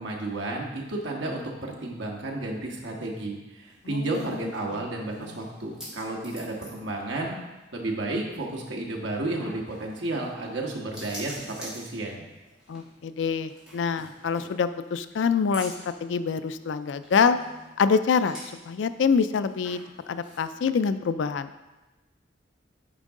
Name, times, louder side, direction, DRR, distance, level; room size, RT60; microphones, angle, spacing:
voice 1, 0.0-7.3 7.7-12.2, right 2 dB, 80° right, -1 dB, 1.4 m, -32 dB
sound 1, 3.6-20.6, equal, 5° right, 2.5 m, -48 dB
voice 2, 3.9-4.2 4.7-4.8 5.2-5.3 12.7-17.4 17.8-18.4 18.7-19.8 20.1-21.5, left 5 dB, 80° left, 12 dB, 0.4 m, -25 dB
9.1 x 5.3 x 3.7 m, 1.1 s
head